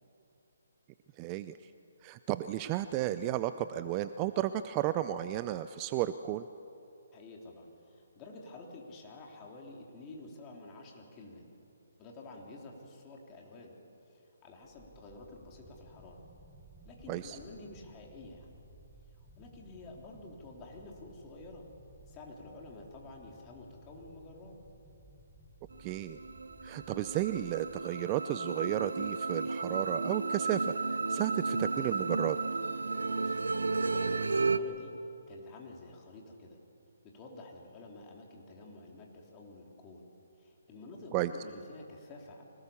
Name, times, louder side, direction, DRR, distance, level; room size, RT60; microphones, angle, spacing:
voice 1, 1.2-1.6 2.0-6.5 17.1-17.4 25.8-26.2 26.6-30.7 31.1-32.4 41.1-41.3, right 14 dB, 25° right, 12 dB, 0.5 m, -33 dB
voice 2, 7.1-11.5 12.0-13.7 14.1-16.2 16.8-18.5 19.4-21.7 22.1-24.6 33.2-33.4 33.9-34.9 35.3-36.6 37.0-40.0 40.4-42.4, left 2 dB, 20° left, 0 dB, 3.4 m, -50 dB
sound 1, 14.6-27.8, right 1 dB, ahead, 1.8 m, -57 dB
sound 2, 25.7-34.6, right 3 dB, 90° right, 1.0 m, -33 dB
25.0 x 18.5 x 7.1 m, 2.7 s
hypercardioid pair, 155°, 0 cm